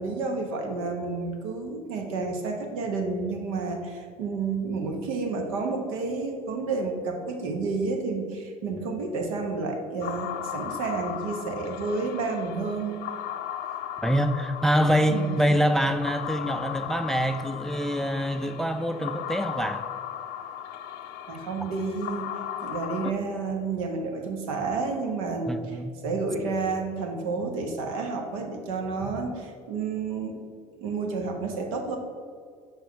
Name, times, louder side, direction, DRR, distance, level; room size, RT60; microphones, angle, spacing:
voice 1, 0.0-13.0 15.1-15.6 21.3-22.3 22.6-30.4 30.8-32.0, right 4 dB, 80° right, 2 dB, 1.0 m, -30 dB
sound 1, 10.0-23.1, left 10 dB, 60° left, 0.5 m, -37 dB
voice 2, 14.0-19.8 25.5-26.0, equal, ahead, 9 dB, 0.4 m, -25 dB
5.3 x 4.6 x 4.5 m, 2.1 s
hypercardioid pair, 65°, 17 cm